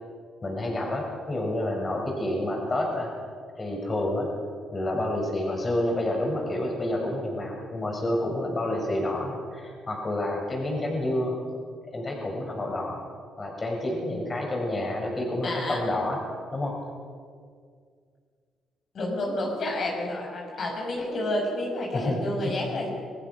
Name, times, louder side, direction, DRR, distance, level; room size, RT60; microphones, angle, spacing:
voice 1, 0.4-3.1 3.6-4.3 4.7-11.4 11.9-13.0 13.4-16.2 16.5-16.7 21.9-22.2, left 1 dB, 30° left, 0 dB, 6.6 m, -29 dB
voice 2, 15.4-15.8 18.9-22.9, left 1 dB, 55° left, -1 dB, 5.9 m, -30 dB
28.5 x 19.0 x 6.2 m, 2.1 s
cardioid pair, 90°, 0 cm